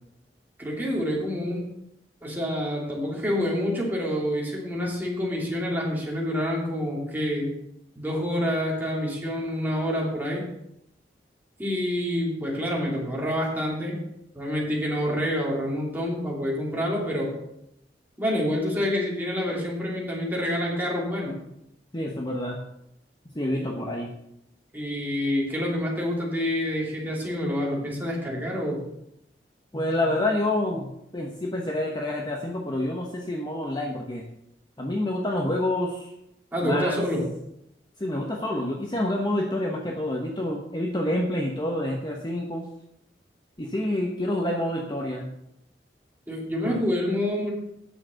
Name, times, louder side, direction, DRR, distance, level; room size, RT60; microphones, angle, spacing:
voice 1, 0.6-1.6 2.2-7.5 7.9-10.4 11.6-14.0 14.3-17.3 18.2-21.4 23.5-23.6 24.7-28.8 36.5-37.3 46.3-47.5, equal, 10° right, -3 dB, 2.9 m, -27 dB
voice 2, 21.9-22.6 23.3-24.1 29.7-34.2 34.8-36.1 36.6-37.0 38.0-42.6 43.6-45.3 46.6-46.8, left 1 dB, 25° left, 0 dB, 1.0 m, -28 dB
9.2 x 6.8 x 6.4 m, 0.80 s
head